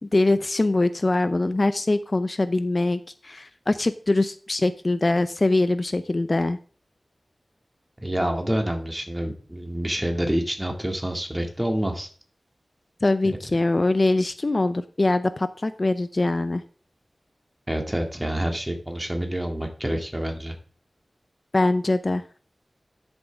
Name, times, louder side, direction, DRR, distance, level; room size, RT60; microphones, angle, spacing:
voice 1, 0.0-6.6 13.0-16.6 21.5-22.2, left 2 dB, 45° left, 12 dB, 0.6 m, -23 dB
voice 2, 8.0-12.1 17.7-20.6, right 1 dB, 15° right, 3 dB, 2.1 m, -27 dB
12.0 x 7.2 x 3.5 m, 0.41 s
wide cardioid pair, 65°, 0 cm